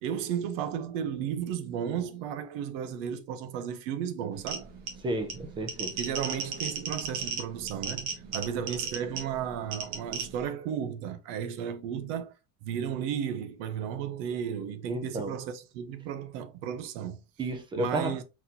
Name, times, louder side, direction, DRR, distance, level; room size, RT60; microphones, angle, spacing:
voice 1, 0.0-4.7 6.0-12.3 12.6-17.2 17.7-18.2, right 8 dB, 90° right, 0.9 m, -34 dB
sound 1, 4.3-10.5, right 5 dB, 55° right, 1.5 m, -36 dB
voice 2, 5.0-5.9 14.9-15.3 17.4-18.1, right 1 dB, 15° right, 0.4 m, -32 dB
4.2 x 4.1 x 2.6 m
cardioid pair, 180°, 37 cm